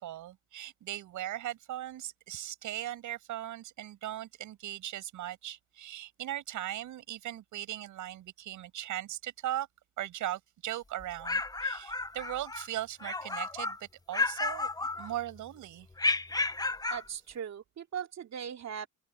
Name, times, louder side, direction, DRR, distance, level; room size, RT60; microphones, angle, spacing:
voice 1, 0.0-9.7 10.0-14.7 15.0-15.9, right 13 dB, 80° right, 6.0 m, -38 dB
sound 1, 11.0-12.7 13.0-13.8 14.1-15.4 16.0-17.1, left 3 dB, 10° left, 0.9 m, -32 dB
voice 2, 16.9-18.9, right 8 dB, 60° right, 3.0 m, -39 dB
cardioid pair, 90°, 30 cm